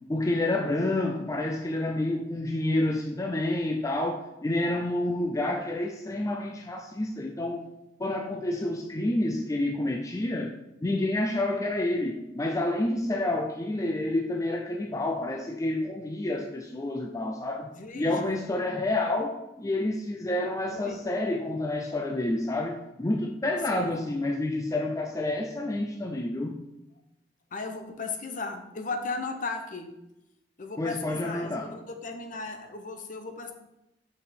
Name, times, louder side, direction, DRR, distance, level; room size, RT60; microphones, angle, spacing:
voice 1, 0.1-7.6 8.0-10.5 10.8-17.7 18.0-26.5 30.8-31.7, left 1 dB, 20° left, 2 dB, 0.5 m, -29 dB
voice 2, 17.7-18.3 20.7-21.0 23.7-24.0 27.5-29.9 30.6-33.5, left 3 dB, 45° left, 5 dB, 0.8 m, -36 dB
6.5 x 5.3 x 4.2 m, 0.91 s
head